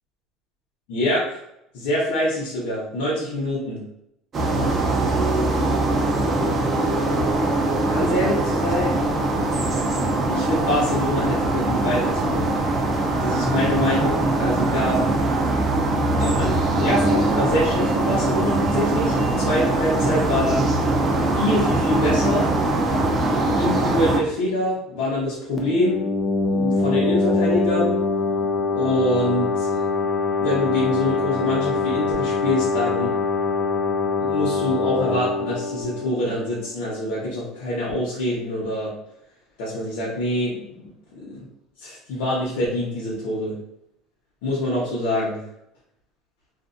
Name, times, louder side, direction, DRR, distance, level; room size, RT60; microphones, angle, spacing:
voice 1, 0.9-1.4 1.7-3.8 7.7-9.0 10.2-12.5 13.2-15.0 16.2-20.7 21.3-22.5 23.6-26.1 26.5-28.0 28.8-29.8 30.4-33.1 34.2-38.9 39.6-40.9 41.1-41.4 41.8-43.6 44.4-45.4, left 1 dB, 85° left, -7 dB, 0.9 m, -25 dB
sound 1, 4.3-24.2, right 2 dB, 30° right, 0.5 m, -22 dB
sound 2, 25.6-37.0, left 3 dB, 30° left, 0.5 m, -24 dB
2.6 x 2.5 x 2.5 m, 0.79 s
cardioid pair, 135°, 0 cm